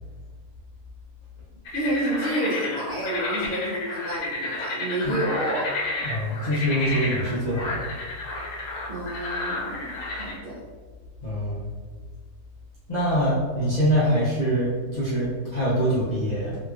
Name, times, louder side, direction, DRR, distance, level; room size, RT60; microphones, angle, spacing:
sound 1, 1.7-10.4, left 2 dB, 80° left, 1.1 m, -31 dB
voice 1, 1.7-5.7 8.9-10.6, right 1 dB, 65° right, -6 dB, 0.6 m, -29 dB
voice 2, 5.9-7.8 11.2-11.8 12.9-16.6, equal, 60° left, -10 dB, 0.4 m, -24 dB
3.0 x 2.9 x 2.3 m, 1.5 s
omnidirectional pair, 1.6 m